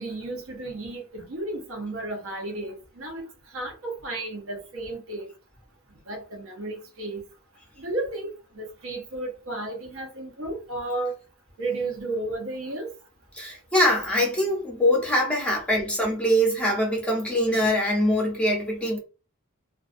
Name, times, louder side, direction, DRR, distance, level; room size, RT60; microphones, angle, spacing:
voice 1, 0.0-3.3 3.5-5.3 6.1-7.2 7.8-11.1 11.6-12.9, right 2 dB, 65° right, 0.7 m, -33 dB
voice 2, 13.3-19.0, equal, 5° left, 0.6 m, -23 dB
2.4 x 2.2 x 2.4 m
head